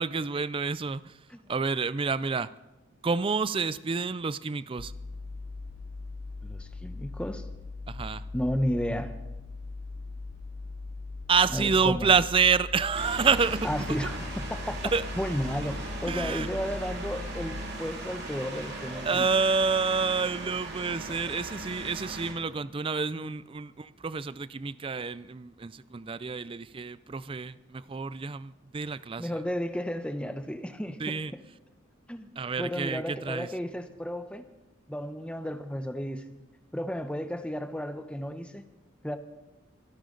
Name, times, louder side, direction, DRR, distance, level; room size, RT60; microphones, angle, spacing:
voice 1, 0.0-1.2 1.5-2.5 3.0-4.9 7.9-8.2 11.3-13.7 14.9-15.0 16.0-16.5 18.5-18.6 18.9-29.4 31.0-31.3 32.4-33.5, right 5 dB, 25° right, 0.4 m, -28 dB
sound 1, 4.8-17.7, left 3 dB, 60° left, 0.9 m, -40 dB
voice 2, 6.4-7.4 8.3-9.1 11.5-12.1 13.6-14.8 15.2-19.3 21.1-21.2 23.1-23.3 29.2-31.2 32.1-32.3 32.6-34.4 34.9-36.2 36.7-38.6 39.0-39.2, equal, 5° left, 0.9 m, -33 dB
sound 2, 12.9-22.3, right 2 dB, 55° right, 2.8 m, -39 dB
24.0 x 11.5 x 3.9 m
head